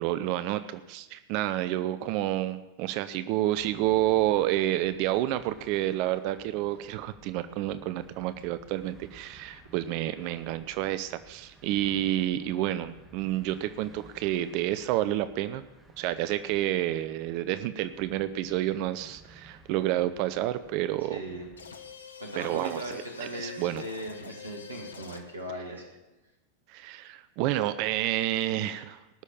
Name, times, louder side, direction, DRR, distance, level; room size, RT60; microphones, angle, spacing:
voice 1, 0.0-15.6 16.0-21.2 22.4-22.9 23.3-23.8 26.7-29.0, right 14 dB, 45° right, 12 dB, 0.5 m, -29 dB
sound 1, 3.5-21.9, right 2 dB, 10° right, 1.9 m, -56 dB
voice 2, 21.1-21.5 22.2-25.9, right 1 dB, 80° right, 1 dB, 2.0 m, -38 dB
sound 2, 21.6-25.5, left 6 dB, 70° left, 1.0 m, -46 dB
19.0 x 6.4 x 7.2 m, 1.1 s
figure-of-eight pair, 90°, 0 cm